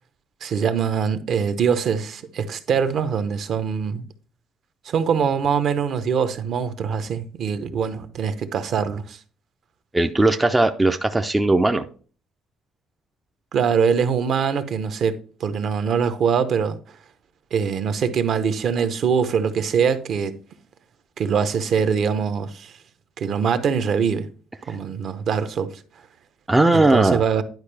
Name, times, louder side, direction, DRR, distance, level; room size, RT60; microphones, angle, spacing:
voice 1, 0.4-4.1 4.8-9.2 13.5-16.8 17.5-20.4 21.2-22.7 23.2-24.3 24.7-25.7 26.7-27.4, right 6 dB, 45° right, 0.7 m, -23 dB
voice 2, 9.9-11.8 26.5-27.2, right 2 dB, 10° right, 0.4 m, -18 dB
10.5 x 5.1 x 3.3 m
cardioid pair, 170°, 0 cm